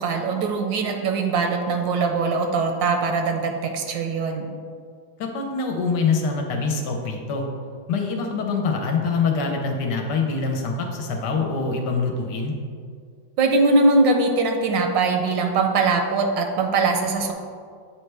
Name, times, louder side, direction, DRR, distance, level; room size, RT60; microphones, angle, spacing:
voice 1, 0.0-4.5 13.4-17.3, right 3 dB, 80° right, 4 dB, 1.3 m, -21 dB
voice 2, 5.2-7.4 7.9-12.5, left 4 dB, 70° left, 2 dB, 1.3 m, -24 dB
8.1 x 4.4 x 3.3 m, 2.1 s
omnidirectional pair, 2.1 m